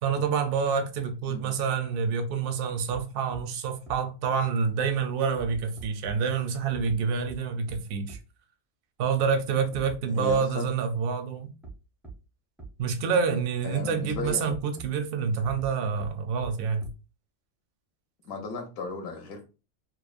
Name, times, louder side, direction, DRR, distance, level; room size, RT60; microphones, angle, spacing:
voice 1, 0.0-8.2 9.0-11.5 12.8-16.8, right 6 dB, 60° right, 0.6 m, -27 dB
sound 1, 2.9-3.0 3.3-3.4 3.9-4.0 5.4-6.1 6.7-7.0 7.3-7.4 7.7-7.8 8.1-8.2 9.7-10.0 10.3-10.4 11.6-11.7 12.0-12.1 12.6-12.7 14.1-14.9 15.4-15.7 16.0-16.1 16.4-16.5 16.8-16.9, right 4 dB, ahead, 0.3 m, -42 dB
voice 2, 10.1-10.7 13.6-14.6 15.2-15.3 18.2-19.4, left 4 dB, 55° left, 0.8 m, -35 dB
3.0 x 2.0 x 2.4 m
omnidirectional pair, 1.3 m